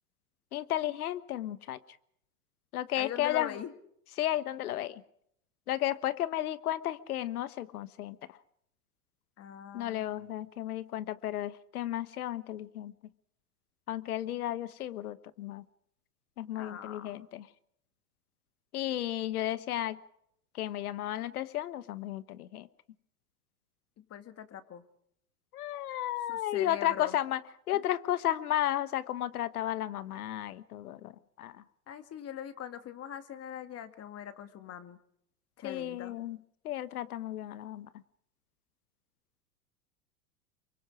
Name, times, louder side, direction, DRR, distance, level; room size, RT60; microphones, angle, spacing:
voice 1, 0.5-1.8 2.7-3.5 4.2-5.0 5.7-8.4 9.7-12.9 13.9-15.6 16.4-17.5 18.7-20.0 20.6-22.7 25.5-27.4 27.7-31.6 35.6-36.4 36.6-37.9, left 12 dB, 75° left, 16 dB, 1.3 m, -33 dB
voice 2, 3.0-3.7 9.4-10.3 16.5-17.1 24.0-24.8 26.3-27.2 27.7-27.8 31.9-35.0 35.6-36.1, left 10 dB, 35° left, 9 dB, 2.3 m, -42 dB
27.5 x 24.0 x 5.0 m, 0.71 s
hypercardioid pair, 95°, 45 cm